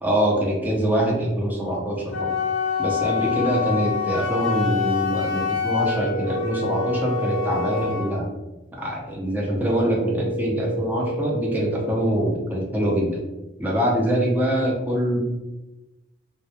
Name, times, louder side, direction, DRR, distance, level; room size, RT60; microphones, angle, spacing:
voice 1, 0.0-2.3 2.8-8.3 8.7-13.2 13.6-15.2, right 1 dB, 10° right, -3 dB, 0.4 m, -24 dB
Wind instrument woodwind instrument, 2.1-8.2, left 7 dB, 85° left, 0.4 m, -26 dB
sound 1, 5.8-7.8 9.8-11.8, right 1 dB, 25° left, 0.7 m, -29 dB
2.2 x 2.1 x 2.7 m, 1.0 s
head